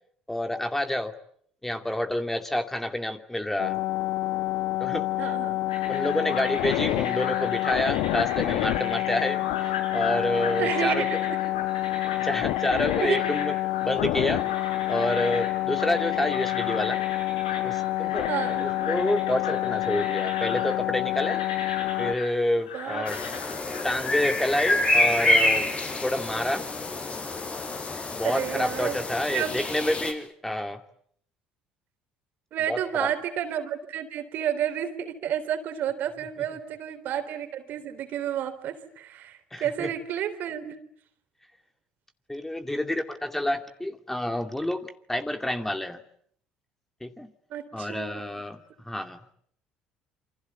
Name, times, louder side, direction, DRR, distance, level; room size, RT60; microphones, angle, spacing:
voice 1, 0.3-1.1 1.6-3.8 4.8-5.3 5.9-11.1 12.2-13.6 13.8-14.4 14.9-17.0 17.6-21.4 22.0-23.2 23.8-25.7 26.0-26.7 28.1-30.8 32.7-33.1 39.5-39.9 42.3-46.0 47.0-47.3 47.7-49.3, left 1 dB, 10° left, 7 dB, 2.5 m, -28 dB
sound 1, 3.6-22.1, left 17 dB, 70° left, 1.3 m, -28 dB
voice 2, 5.2-5.6 10.6-11.4 13.0-13.2 18.3-18.9 22.7-23.0 23.7-23.8 28.2-29.0 29.3-29.5 32.5-40.8 47.5-48.2, right 10 dB, 55° right, 9 dB, 3.6 m, -31 dB
sound 2, 5.7-23.9, left 6 dB, 85° left, 6.5 m, -37 dB
sound 3, 23.1-30.1, left 1 dB, 35° left, 5.9 m, -27 dB
28.0 x 25.5 x 8.3 m, 0.66 s
hypercardioid pair, 60°, 4 cm